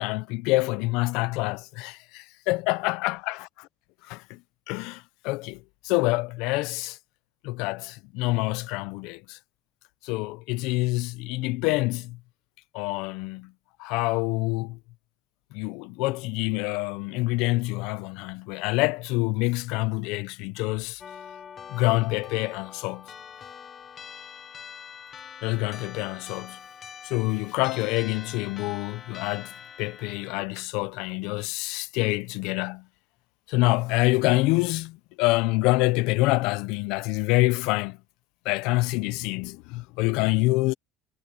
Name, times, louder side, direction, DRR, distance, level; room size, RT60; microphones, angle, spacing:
voice 1, 0.0-3.4 4.1-4.4 4.7-7.0 7.4-9.4 10.0-12.2 12.7-13.5 13.8-14.8 15.5-21.0 21.7-23.1 25.4-26.6 27.0-32.8 33.5-38.0 38.4-40.7, left 22 dB, 65° left, 0.5 m, -26 dB
sound 1, 21.0-30.5, left 7 dB, 25° left, 0.8 m, -44 dB
cardioid pair, 175°, 0 cm